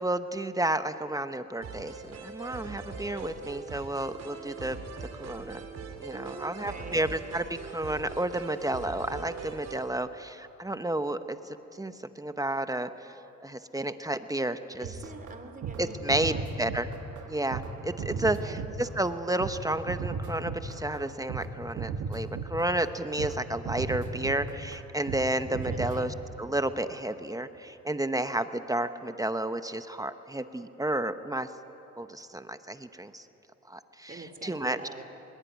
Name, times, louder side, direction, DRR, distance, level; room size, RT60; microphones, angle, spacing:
voice 1, 0.0-4.8 5.2-5.6 6.0-11.4 11.8-13.1 13.4-14.9 15.8-16.9 17.3-31.5 32.0-33.2 33.7-34.8, right 1 dB, 10° right, 9 dB, 1.0 m, -31 dB
sound 1, 1.6-9.9, right 4 dB, 55° right, 3.3 m, -42 dB
voice 2, 6.1-7.0 14.8-16.6 18.0-18.7 25.5-26.1 34.1-35.0, right 3 dB, 30° right, 7 dB, 3.0 m, -45 dB
sound 2, 14.8-21.5 21.8-22.9 23.2-23.4 23.7-24.8 25.1-25.3 25.5-26.0, right 5 dB, 80° right, 2.2 m, -35 dB
24.0 x 22.0 x 9.5 m, 3.0 s
cardioid pair, 90°, 30 cm